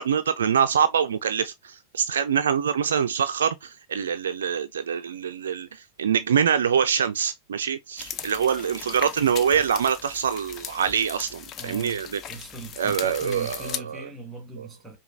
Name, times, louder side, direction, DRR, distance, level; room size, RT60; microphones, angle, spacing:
voice 1, 0.0-12.2 12.8-14.1 14.6-14.7, right 7 dB, 65° right, 0.3 m, -25 dB
sound 1, 8.0-13.8, left 8 dB, 30° left, 0.4 m, -38 dB
voice 2, 11.6-12.0 12.3-15.0, right 4 dB, 10° right, 1.6 m, -39 dB
4.9 x 2.3 x 2.5 m
figure-of-eight pair, 90°, 0 cm